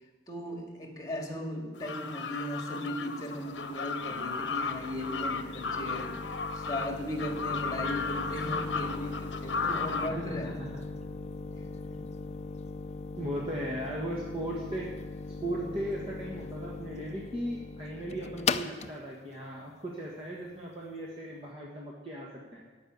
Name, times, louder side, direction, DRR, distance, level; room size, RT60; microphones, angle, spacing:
voice 1, 0.3-10.6 11.5-12.1, equal, 20° left, 2 dB, 2.0 m, -37 dB
sound 1, 1.8-10.1, left 5 dB, 70° left, 0.8 m, -35 dB
sound 2, 3.5-21.0, left 4 dB, 35° left, 0.4 m, -40 dB
voice 2, 10.1-10.8 13.2-14.9 15.4-22.7, right 1 dB, 30° right, -4 dB, 1.5 m, -37 dB
14.0 x 5.6 x 9.3 m, 1.4 s
head